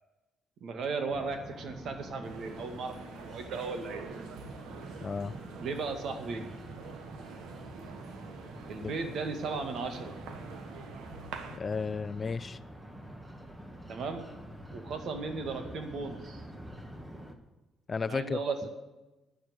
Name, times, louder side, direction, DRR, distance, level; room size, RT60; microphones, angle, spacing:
voice 1, 0.6-3.0 3.3-4.4 5.6-6.4 8.7-10.1 13.9-14.3 14.7-16.5 18.1-18.7, right 4 dB, 70° right, 6 dB, 2.2 m, -36 dB
sound 1, 1.1-17.3, equal, 15° right, 1.9 m, -47 dB
sound 2, 2.2-11.6, right 6 dB, 90° right, 1.4 m, -46 dB
voice 2, 5.0-5.3 8.8-8.9 11.6-12.6 17.9-18.4, left 4 dB, 35° left, 16 dB, 0.5 m, -33 dB
10.0 x 9.2 x 9.7 m, 1.1 s
cardioid pair, 90°, 0 cm